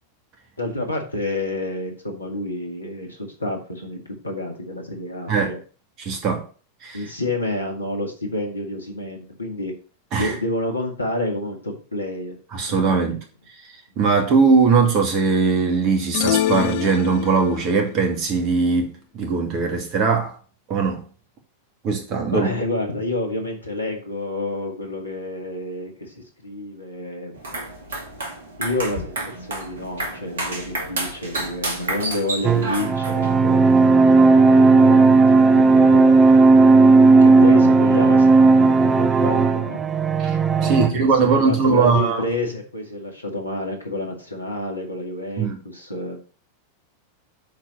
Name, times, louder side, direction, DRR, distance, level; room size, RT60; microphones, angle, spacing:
voice 1, 0.6-4.0 4.2-5.6 6.9-9.7 10.2-12.4 12.7-13.1 22.3-27.3 28.6-33.8 34.3-36.6 37.2-39.8 40.6-46.2, left 1 dB, 80° left, 2.0 m, -29 dB
voice 2, 6.0-6.4 6.8-7.0 10.1-10.3 12.5-13.2 14.0-20.4 20.7-21.0 21.8-22.5 40.2-42.2 45.4-45.6, right 4 dB, 40° right, 2.3 m, -20 dB
sound 1, 16.1-17.7, left 12 dB, 50° left, 0.5 m, -24 dB
sound 2, 27.3-33.3, right 2 dB, 65° right, 2.2 m, -30 dB
sound 3, 32.4-40.9, right 3 dB, 20° right, 0.8 m, -14 dB
7.4 x 4.6 x 6.4 m
figure-of-eight pair, 90°, 0 cm